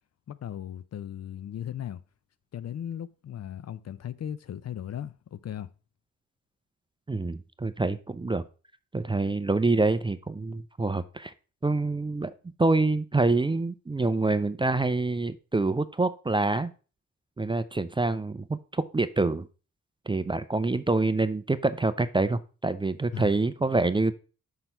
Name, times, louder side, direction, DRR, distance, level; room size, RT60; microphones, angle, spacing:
voice 1, 0.3-2.0 2.5-5.7 23.1-23.3, left 10 dB, 55° left, 0.5 m, -37 dB
voice 2, 7.1-8.4 8.9-11.3 11.6-12.3 12.6-16.7 17.4-19.5 20.1-24.1, right 3 dB, 15° right, 0.4 m, -26 dB
6.0 x 5.6 x 4.4 m
cardioid pair, 85°, 32 cm